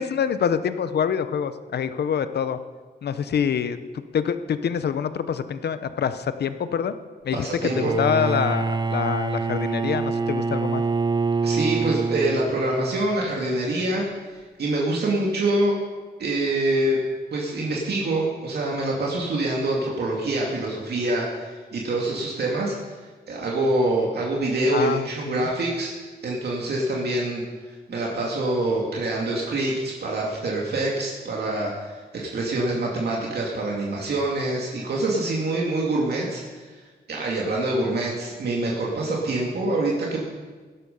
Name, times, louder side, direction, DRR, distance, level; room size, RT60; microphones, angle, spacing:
voice 1, 0.0-2.6 3.0-6.9 7.2-7.5 7.8-10.8 24.7-25.5, left 7 dB, 70° left, 12 dB, 0.9 m, -26 dB
voice 2, 7.3-7.9 11.4-14.0 14.3-15.8 16.2-17.0 17.3-22.8 23.3-25.9 26.2-36.8 37.1-40.2, right 2 dB, 70° right, -3 dB, 2.4 m, -25 dB
Bowed string instrument, 7.6-12.9, right 4 dB, 25° right, 0.5 m, -25 dB
17.0 x 12.5 x 5.4 m, 1.4 s
wide cardioid pair, 120°, 18 cm